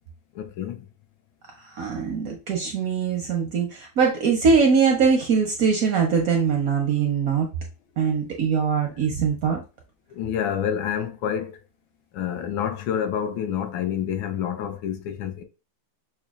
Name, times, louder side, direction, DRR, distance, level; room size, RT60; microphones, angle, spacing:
voice 1, 0.3-0.9 10.1-11.6 12.1-15.4, left 9 dB, 90° left, 1.4 m, -28 dB
voice 2, 1.6-7.5 8.0-9.6, right 5 dB, 70° right, 0.8 m, -22 dB
5.9 x 2.2 x 2.3 m
omnidirectional pair, 2.1 m